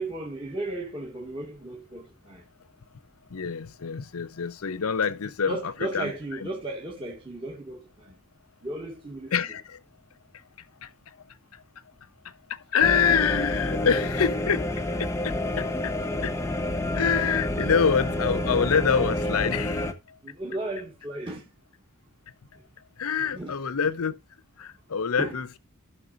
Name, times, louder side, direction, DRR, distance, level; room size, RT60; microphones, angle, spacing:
voice 1, 0.0-2.4 5.5-8.2 8.6-9.3 20.2-21.4 23.2-23.6 25.2-25.4, right 2 dB, 25° right, 1.6 m, -35 dB
voice 2, 3.3-5.6 5.9-6.1 6.4-6.5 9.3-9.8 10.8-10.9 11.5-11.6 12.2-14.7 15.0-15.9 16.2-16.3 16.9-20.2 23.0-24.1 24.6-25.6, left 6 dB, 70° left, 0.7 m, -26 dB
sound 1, 12.8-19.9, left 1 dB, 15° left, 0.8 m, -28 dB
17.0 x 6.1 x 2.5 m
head